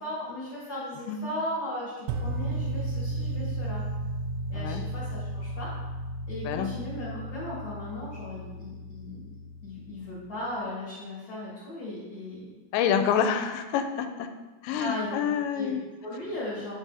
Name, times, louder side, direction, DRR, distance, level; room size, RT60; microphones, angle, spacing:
voice 1, 0.0-3.8 4.5-5.7 6.3-9.3 9.6-12.5 14.7-15.2 15.5-15.7 16.0-16.8, left 1 dB, 50° left, -10 dB, 2.2 m, -37 dB
sound 1, 2.1-10.2, right 1 dB, 85° right, 2.6 m, -34 dB
voice 2, 12.7-14.3 14.6-15.8, left 8 dB, 85° left, 7 dB, 2.8 m, -27 dB
9.5 x 4.0 x 3.7 m, 1.2 s
omnidirectional pair, 5.0 m